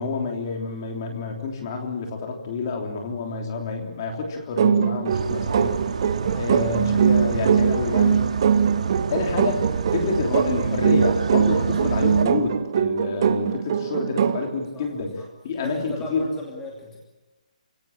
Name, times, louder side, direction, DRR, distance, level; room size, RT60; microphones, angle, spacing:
voice 1, 0.0-5.8 6.3-8.2 9.1-16.3, left 4 dB, 25° left, 2 dB, 3.3 m, -28 dB
sound 1, 4.6-14.5, right 7 dB, 30° right, 1.0 m, -22 dB
sound 2, 5.1-12.2, right 5 dB, 55° right, 2.3 m, -29 dB
voice 2, 6.2-6.5 14.7-14.9 15.6-17.0, left 2 dB, 5° left, -3 dB, 2.7 m, -37 dB
28.0 x 17.0 x 8.8 m, 1.1 s
hypercardioid pair, 175°, 4 cm